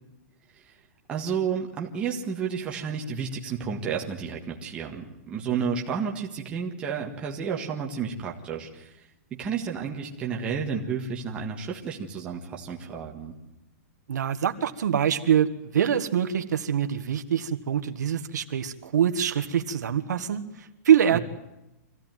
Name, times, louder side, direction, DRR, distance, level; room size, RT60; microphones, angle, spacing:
voice 1, 1.1-9.0 9.3-13.3 21.1-21.2, right 6 dB, 10° right, -1 dB, 1.6 m, -31 dB
voice 2, 14.1-21.2, right 9 dB, 90° right, 7 dB, 1.7 m, -24 dB
24.5 x 16.0 x 9.3 m, 0.92 s
hypercardioid pair, 180°, 9 cm